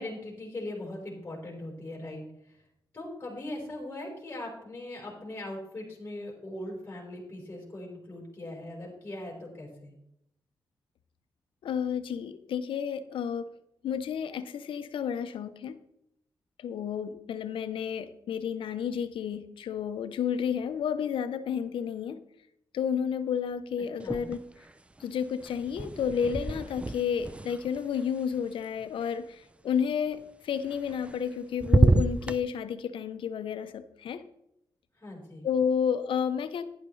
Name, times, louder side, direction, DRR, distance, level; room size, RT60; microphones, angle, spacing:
voice 1, 0.0-2.6 2.9-9.9 23.8-24.3 35.0-35.5, left 1 dB, 25° left, 4.4 m, -40 dB
voice 2, 11.6-13.5 13.8-15.8 16.6-22.2 22.7-24.4 25.0-34.2 35.4-36.7, left 7 dB, 80° left, 0.7 m, -31 dB
sound 1, 24.0-24.7 25.0-29.1 30.7-31.3 31.6-32.4, right 2 dB, 15° right, 0.5 m, -28 dB
11.5 x 10.0 x 3.2 m
cardioid pair, 65°, 9 cm